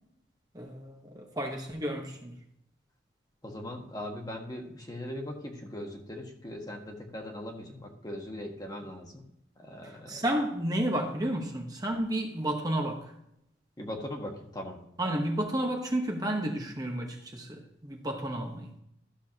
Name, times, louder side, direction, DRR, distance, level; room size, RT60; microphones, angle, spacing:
voice 1, 0.5-2.3 9.8-13.1 15.0-18.7, right 1 dB, 20° right, 1 dB, 1.1 m, -32 dB
voice 2, 3.4-9.2 9.6-10.3 13.8-14.8, left 1 dB, 20° left, 2 dB, 1.5 m, -40 dB
13.0 x 6.9 x 2.8 m, 0.78 s
head